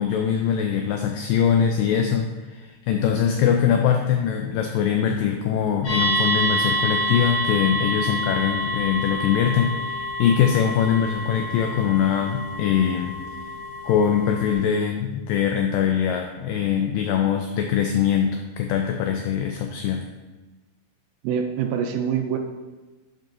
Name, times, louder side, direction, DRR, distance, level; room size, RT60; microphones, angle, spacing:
voice 1, 0.0-13.2 13.8-20.0, left 8 dB, 85° left, 4 dB, 1.9 m, -22 dB
sound 1, 5.9-14.5, equal, 65° left, 3.5 m, -27 dB
voice 2, 21.2-22.4, right 8 dB, 80° right, 4 dB, 2.2 m, -25 dB
10.5 x 5.4 x 2.6 m, 1.2 s
omnidirectional pair, 4.4 m